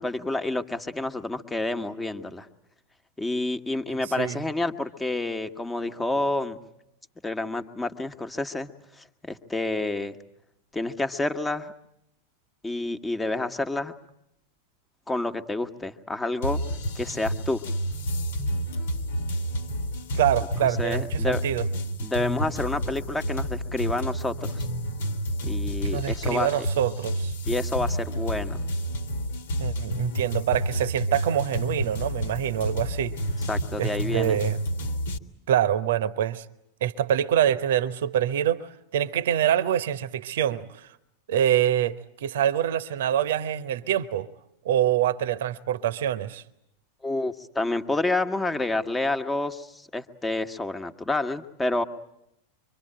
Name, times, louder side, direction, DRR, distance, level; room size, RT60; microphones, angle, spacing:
voice 1, 0.0-2.5 3.2-6.6 7.2-8.7 9.0-10.2 10.7-11.7 12.6-13.9 15.1-16.6 16.9-17.6 20.8-21.4 22.0-24.6 25.4-26.5 27.5-28.6 33.5-34.4 47.0-51.8, left 2 dB, 10° left, 1.5 m, -29 dB
sound 1, 16.4-35.2, equal, 60° left, 1.7 m, -30 dB
voice 2, 20.1-21.7 25.9-27.3 29.6-33.1 33.8-34.6 35.5-36.5 36.8-40.9 41.3-44.3 44.6-46.4, right 10 dB, 55° right, 1.0 m, -25 dB
26.0 x 25.0 x 8.9 m
figure-of-eight pair, 90°, 0 cm